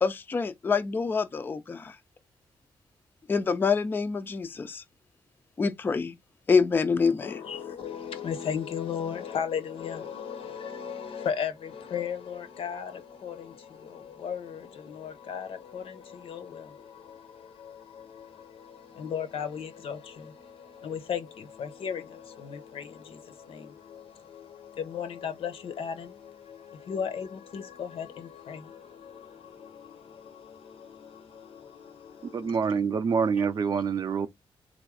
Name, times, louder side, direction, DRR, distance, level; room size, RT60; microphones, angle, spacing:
voice 1, 0.0-2.0 3.3-4.8 5.6-6.2 6.5-7.4, left 5 dB, 20° left, 0.3 m, -26 dB
voice 2, 7.2-32.5 33.7-33.8, left 7 dB, 75° left, 0.8 m, -37 dB
voice 3, 32.2-34.3, right 6 dB, 45° right, 0.4 m, -26 dB
3.9 x 2.5 x 4.7 m
wide cardioid pair, 175°, 10 cm